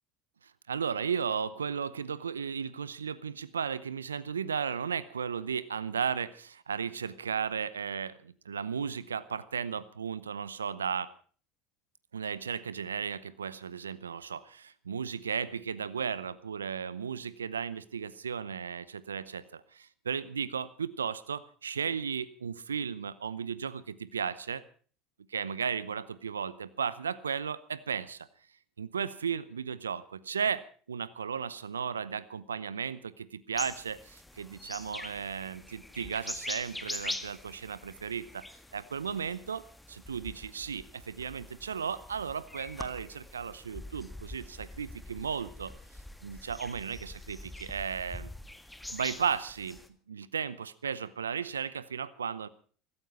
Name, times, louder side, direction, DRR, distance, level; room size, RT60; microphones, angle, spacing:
voice 1, 0.7-11.1 12.1-24.6 25.3-28.3 28.8-30.6 30.9-38.4 38.7-39.6 39.9-45.7 46.2-48.3 48.9-49.8 50.1-52.5, right 6 dB, 90° right, 18 dB, 0.7 m, -35 dB
sound 1, 33.5-49.9, left 1 dB, 10° left, 1.9 m, -44 dB
16.5 x 14.0 x 5.5 m, 0.43 s
hypercardioid pair, 75°, 0 cm